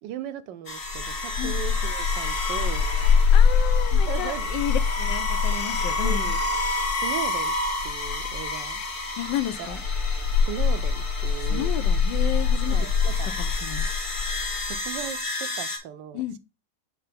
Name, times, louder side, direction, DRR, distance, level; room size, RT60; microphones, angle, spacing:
voice 1, 0.0-2.9 3.9-4.5 6.0-6.4 7.0-7.5 7.8-8.8 9.6-9.8 10.5-11.7 12.7-13.3 14.7-16.4, right 10 dB, 75° right, 1.2 m, -37 dB
sound 1, 0.7-15.8, left 5 dB, 45° left, 1.8 m, -24 dB
voice 2, 3.3-6.3 9.2-9.8 11.4-12.8 13.4-13.9 16.1-16.4, left 11 dB, 75° left, 1.3 m, -32 dB
6.8 x 2.9 x 5.1 m
omnidirectional pair, 2.1 m